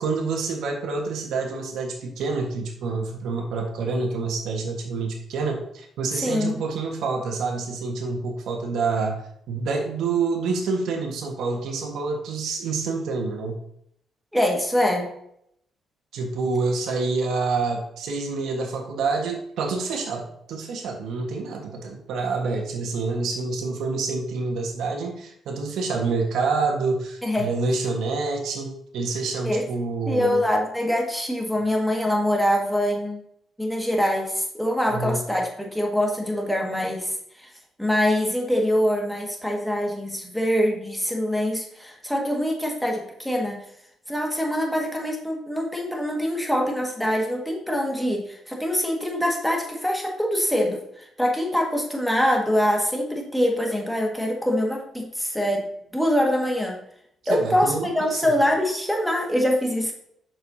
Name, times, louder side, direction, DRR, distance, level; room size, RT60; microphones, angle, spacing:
voice 1, 0.0-13.6 16.1-30.4 34.9-35.3 57.3-58.3, right 4 dB, 80° right, 2 dB, 1.5 m, -27 dB
voice 2, 6.1-6.6 14.3-15.1 27.2-27.5 29.4-29.6 30.1-33.2 33.6-37.1 37.4-37.5 37.8-43.6 44.1-56.8 57.3-59.9, equal, ahead, 0 dB, 1.8 m, -24 dB
7.9 x 6.5 x 2.8 m, 0.72 s
cardioid pair, 90°, 0 cm